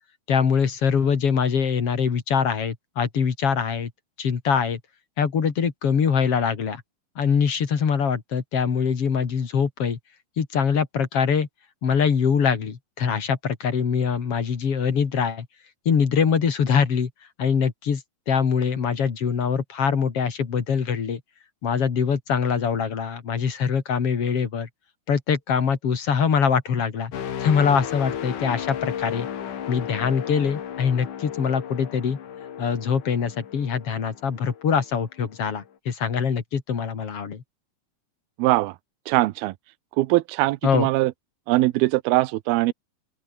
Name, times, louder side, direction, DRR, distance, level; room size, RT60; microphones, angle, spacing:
voice 1, 0.3-3.9 4.2-4.8 5.2-6.8 7.2-10.0 10.4-11.5 11.8-15.5 15.8-17.1 17.4-18.0 18.3-21.2 21.6-24.7 25.1-27.1 27.4-29.3 29.7-32.2 32.6-37.4 40.6-40.9, left 6 dB, 45° left, 3.0 m, -23 dB
sound 1, 27.1-34.9 35.4-35.6, left 9 dB, 60° left, 3.5 m, -34 dB
voice 2, 38.4-38.8 39.1-39.5 40.0-41.1 41.5-42.7, right 19 dB, 90° right, 2.6 m, -21 dB
open air
omnidirectional pair, 4.2 m